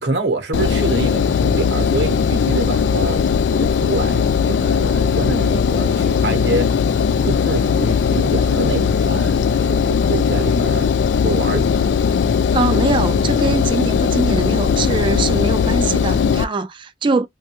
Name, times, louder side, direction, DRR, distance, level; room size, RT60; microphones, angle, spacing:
voice 1, 0.0-3.2 3.5-6.8 7.2-10.9 11.2-11.9 12.7-12.9, right 2 dB, 70° right, 0.8 m, -26 dB
Engine, 0.5-16.4, left 6 dB, 85° left, 0.3 m, -18 dB
voice 2, 12.5-17.3, right 3 dB, 30° right, 0.4 m, -22 dB
3.0 x 2.3 x 2.9 m
head